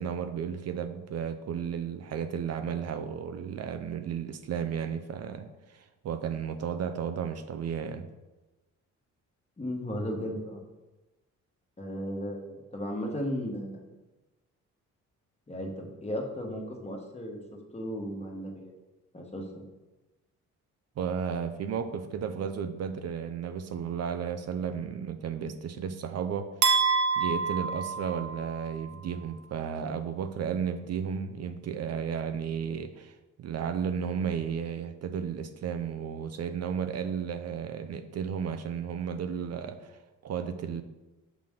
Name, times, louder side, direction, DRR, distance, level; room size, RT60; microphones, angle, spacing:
voice 1, 0.0-8.1 21.0-26.5 27.2-40.8, right 7 dB, 55° right, 9 dB, 0.5 m, -33 dB
voice 2, 9.6-10.6 11.8-13.8 15.5-17.4 17.7-18.7 19.1-19.6, equal, 20° left, 1 dB, 1.4 m, -35 dB
sound 1, 26.6-28.7, right 5 dB, 75° right, 0.9 m, -27 dB
6.1 x 5.8 x 3.7 m, 1.1 s
cardioid pair, 90°, 30 cm